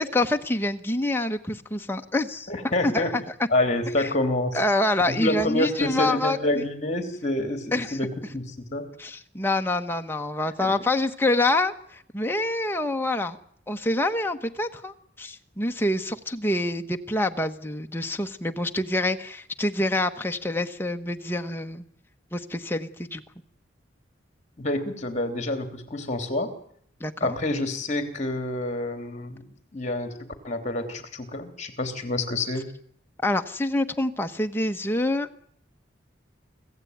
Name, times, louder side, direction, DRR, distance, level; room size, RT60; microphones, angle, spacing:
voice 1, 0.0-2.5 2.8-3.2 4.0-4.1 4.5-6.6 7.7-8.0 9.0-13.4 13.7-21.8 22.3-23.2 27.0-27.4 33.2-35.4, left 2 dB, 10° left, 5 dB, 1.1 m, -26 dB
voice 2, 2.5-3.1 3.5-4.6 5.1-8.9 10.6-10.7 24.6-26.5 27.2-29.4 29.7-32.7, left 1 dB, 35° left, 8 dB, 3.1 m, -27 dB
25.5 x 15.0 x 9.4 m, 0.67 s
head